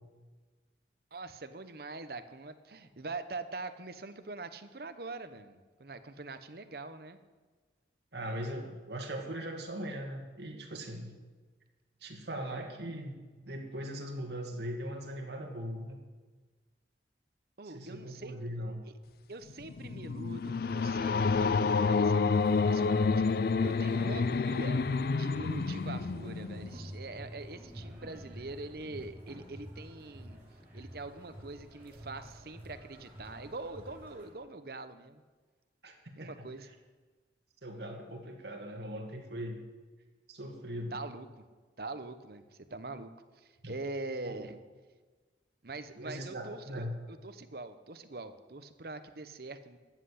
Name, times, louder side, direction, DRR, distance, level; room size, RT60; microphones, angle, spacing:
voice 1, 1.1-7.2 17.6-18.3 19.3-24.8 25.2-30.4 30.7-35.2 36.2-36.7 40.9-41.3 41.8-42.4 42.7-44.6 45.6-46.9 47.2-49.8, right 3 dB, 60° right, 10 dB, 0.9 m, -43 dB
voice 2, 8.1-11.1 12.0-16.0 17.6-18.8 25.7-25.8 35.8-35.9 36.2-36.7 37.6-39.6 40.3-41.0 43.6-43.7 44.2-44.5 46.0-46.9, equal, 75° right, 2 dB, 2.2 m, -40 dB
sound 1, 19.5-26.8, left 4 dB, 55° left, 0.4 m, -29 dB
sound 2, 22.3-34.3, equal, 10° right, 3.2 m, -47 dB
13.5 x 7.7 x 8.4 m, 1.4 s
head